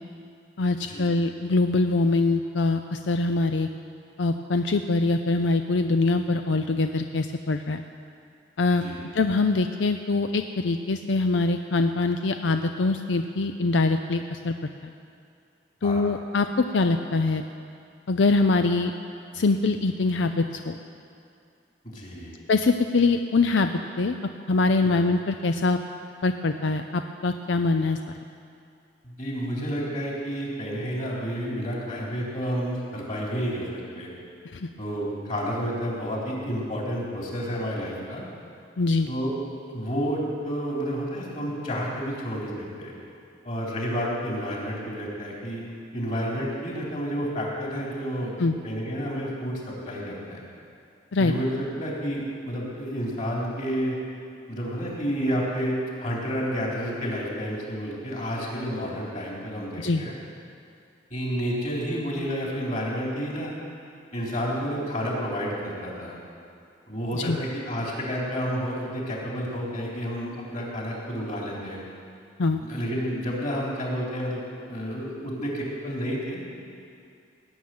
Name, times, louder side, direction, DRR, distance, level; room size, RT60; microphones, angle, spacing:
voice 1, 0.6-3.7 4.2-7.8 8.6-8.9 9.1-14.5 14.8-14.9 15.8-17.4 18.1-18.9 19.3-20.8 22.5-23.7 24.0-24.2 24.5-25.8 26.2-28.2 34.5-34.7 38.8-39.1 48.4-48.6 51.1-51.3 59.8-60.0 67.1-67.4 72.4-72.6, left 3 dB, 90° left, 7 dB, 0.5 m, -23 dB
voice 2, 21.8-22.4 24.8-24.9 29.0-33.7 34.0-34.1 34.8-38.2 39.1-39.3 39.7-42.9 43.4-48.4 48.6-50.4 51.2-54.0 54.5-55.7 56.0-60.1 61.1-63.5 64.1-66.2 66.9-71.8 72.6-76.6, equal, 45° left, -4 dB, 3.8 m, -30 dB
18.0 x 7.3 x 9.4 m, 2.4 s
head